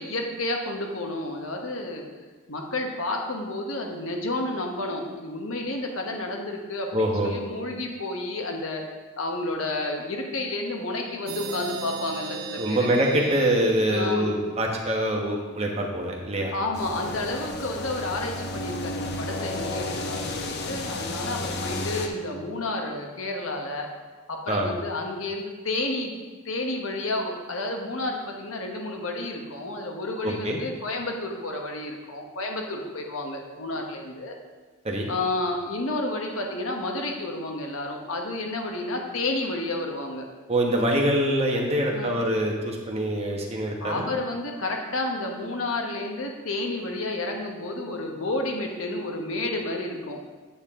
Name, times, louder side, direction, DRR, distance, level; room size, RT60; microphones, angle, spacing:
voice 1, 0.0-2.0 2.5-8.8 9.2-12.9 13.9-14.3 16.5-23.9 24.3-26.1 26.4-34.4 35.1-40.3 41.9-42.1 43.8-50.2, left 2 dB, 75° left, 2 dB, 1.3 m, -31 dB
voice 2, 6.9-7.3 12.6-16.5 24.5-24.7 30.2-30.6 34.8-35.1 40.5-44.1, right 1 dB, 30° right, 0 dB, 1.3 m, -24 dB
sound 1, 11.3-14.8, right 4 dB, 50° right, 0.5 m, -37 dB
sound 2, 16.7-22.1, left 2 dB, 55° left, 0.9 m, -32 dB
8.4 x 8.2 x 3.7 m, 1.3 s
head